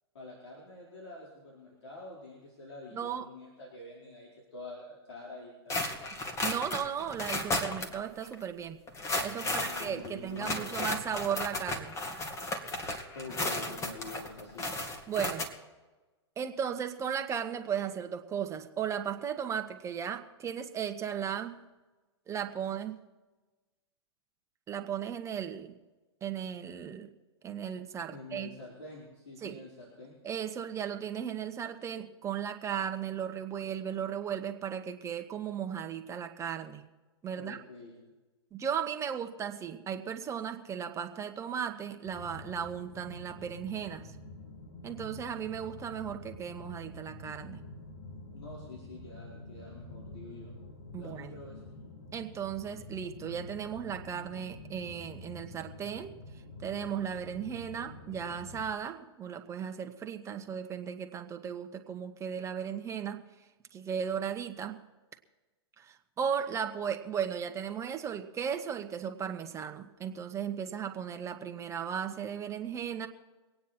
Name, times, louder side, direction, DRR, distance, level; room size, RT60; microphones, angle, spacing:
voice 1, 0.1-5.9 9.4-10.9 13.1-14.7 28.1-30.2 37.3-38.0 48.3-50.5 51.0-51.6, left 2 dB, 75° left, -4 dB, 4.6 m, -47 dB
voice 2, 2.9-3.3 6.4-8.8 9.2-12.0 15.1-15.5 16.4-21.6 22.3-23.0 24.7-25.8 26.2-27.1 27.4-28.5 29.4-29.6 30.2-36.8 37.2-37.6 38.5-44.1 44.8-47.6 50.9-51.3 52.1-56.1 56.6-63.2 63.7-64.8 65.8-73.1, right 8 dB, 20° right, 5 dB, 1.2 m, -36 dB
sound 1, 5.7-8.3 8.9-15.5, left 2 dB, 20° left, 1.9 m, -34 dB
sound 2, 42.0-58.7, left 2 dB, 60° left, 2.9 m, -47 dB
24.0 x 9.4 x 4.4 m, 1.2 s
hypercardioid pair, 125°, 15 cm